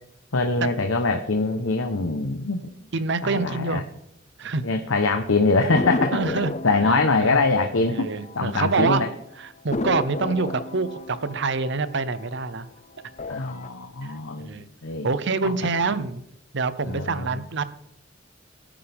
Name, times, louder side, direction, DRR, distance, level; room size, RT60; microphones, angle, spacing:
voice 1, 0.3-2.6 3.2-3.8 4.6-6.2 6.6-8.1 8.3-9.1 13.3-14.5 14.8-15.1 15.4-15.5 16.8-17.4, left 3 dB, 85° left, 5 dB, 1.0 m, -23 dB
voice 2, 2.9-3.8 4.4-4.6 6.1-6.5 6.9-7.0 7.2-7.4 7.9-9.0 9.4-12.7 14.0-14.2 14.4-14.7 15.0-16.2 16.5-17.6, right 4 dB, 60° right, 14 dB, 0.8 m, -26 dB
sound 1, 5.7-8.8 9.1-9.2 9.7-12.6 13.1-13.7, left 2 dB, 35° left, 0.6 m, -32 dB
18.5 x 10.0 x 3.6 m, 0.77 s
head